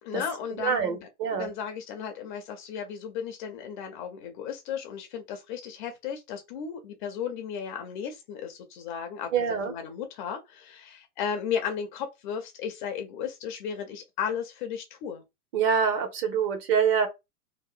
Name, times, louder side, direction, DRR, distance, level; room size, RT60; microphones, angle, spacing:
voice 1, 0.0-15.2, left 7 dB, 35° left, 0.4 m, -35 dB
voice 2, 0.6-1.5 9.3-9.7 15.5-17.1, right 7 dB, 40° right, 0.8 m, -25 dB
2.7 x 2.0 x 2.4 m
hypercardioid pair, 120°, 44 cm